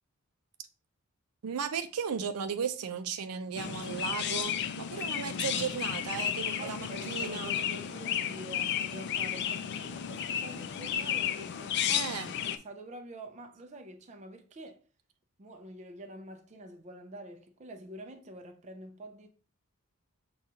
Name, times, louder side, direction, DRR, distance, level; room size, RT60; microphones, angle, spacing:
voice 1, 1.4-7.5 11.9-12.3, right 7 dB, 90° right, 0.4 m, -35 dB
Chirp tweet, 3.6-12.6, left 9 dB, 50° left, 0.3 m, -33 dB
voice 2, 6.6-12.1 12.4-14.8 15.4-19.3, right 1 dB, 30° right, 0.4 m, -46 dB
6.2 x 2.3 x 2.8 m
head